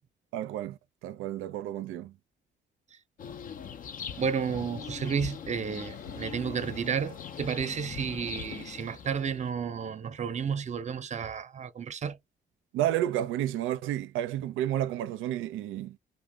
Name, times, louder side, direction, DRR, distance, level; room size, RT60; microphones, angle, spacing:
voice 1, 0.3-2.1 12.7-16.0, right 12 dB, 90° right, 0.4 m, -31 dB
sound 1, 3.2-9.5, left 7 dB, 45° left, 0.4 m, -41 dB
voice 2, 4.2-12.2, right 6 dB, 35° right, 0.6 m, -32 dB
sound 2, 5.1-8.5 8.9-9.3, left 4 dB, 60° left, 1.2 m, -50 dB
2.4 x 2.1 x 3.3 m
cardioid pair, 90°, 20 cm